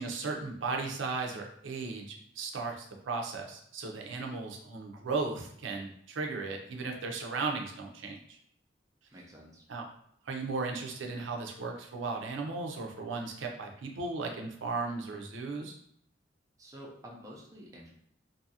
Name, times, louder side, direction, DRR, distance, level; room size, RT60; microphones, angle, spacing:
voice 1, 0.0-8.4 9.7-9.9 10.3-15.8, right 4 dB, 85° right, 2 dB, 0.5 m, -36 dB
voice 2, 9.1-9.6 16.6-17.9, equal, 20° right, -3 dB, 0.5 m, -49 dB
2.6 x 2.4 x 2.7 m, 0.70 s
head